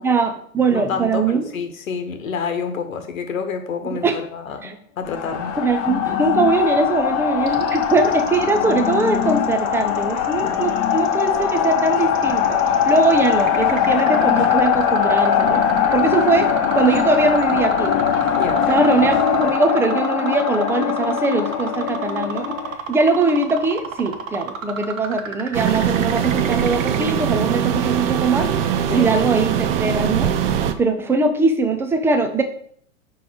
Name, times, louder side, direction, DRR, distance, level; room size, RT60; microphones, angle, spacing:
voice 1, 0.0-1.5 3.9-4.2 4.6-4.7 5.6-12.6 12.9-18.0 18.7-22.6 22.9-28.5 28.9-30.3 30.8-32.4, right 3 dB, 5° right, 6 dB, 0.5 m, -21 dB
voice 2, 0.7-5.6 18.3-18.7 28.9-29.1, left 5 dB, 70° left, 7 dB, 1.4 m, -28 dB
sound 1, 5.0-22.8, left 8 dB, 35° left, 1.0 m, -21 dB
sound 2, 7.4-27.1, right 6 dB, 70° right, 1.4 m, -33 dB
sound 3, 25.5-30.7, right 9 dB, 45° right, 0.7 m, -21 dB
5.3 x 4.8 x 6.3 m, 0.62 s
hypercardioid pair, 115°, 42 cm